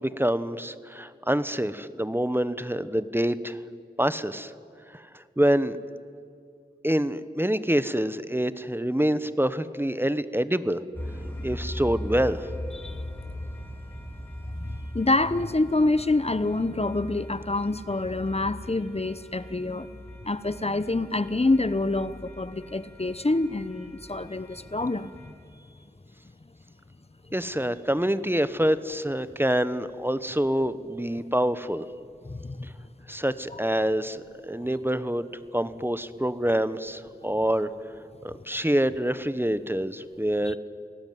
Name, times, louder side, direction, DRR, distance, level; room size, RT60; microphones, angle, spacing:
voice 1, 0.0-3.6 4.0-4.5 4.9-5.8 6.8-10.8 11.4-12.5 27.3-31.8 32.6-32.7 33.1-35.3 35.5-37.7 38.2-40.6, right 1 dB, 15° right, 13 dB, 1.0 m, -26 dB
sound 1, 10.9-25.3, left 1 dB, 10° left, 7.6 m, -40 dB
voice 2, 14.6-20.0 20.2-25.1 32.3-32.7, left 2 dB, 40° left, 14 dB, 0.9 m, -26 dB
28.5 x 19.0 x 9.4 m, 2.4 s
wide cardioid pair, 55°, 17 cm